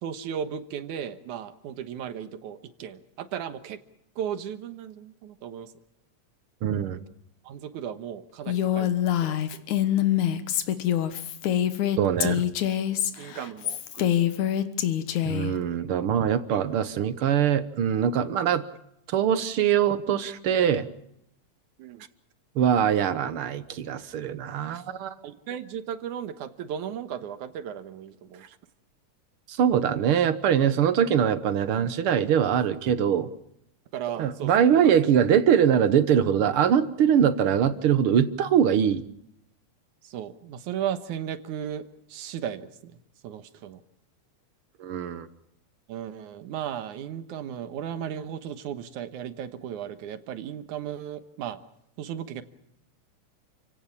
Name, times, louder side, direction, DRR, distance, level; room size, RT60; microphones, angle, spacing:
voice 1, 0.0-3.8 4.2-5.7 7.4-9.4 10.0-10.1 13.2-14.3 21.8-22.1 25.2-28.4 33.9-34.7 40.0-43.0 43.2-43.8 45.9-51.6 52.0-52.4, right 9 dB, 90° right, 11 dB, 2.7 m, -35 dB
voice 2, 6.6-7.0 12.0-12.4 15.2-18.6 19.1-20.9 22.6-25.1 29.5-33.3 34.2-39.0 44.8-45.3, right 8 dB, 60° right, 13 dB, 1.6 m, -23 dB
Female speech woman speaking, 8.5-15.5, left 11 dB, 80° left, 2.7 m, -25 dB
29.0 x 17.0 x 7.2 m, 0.78 s
omnidirectional pair, 3.4 m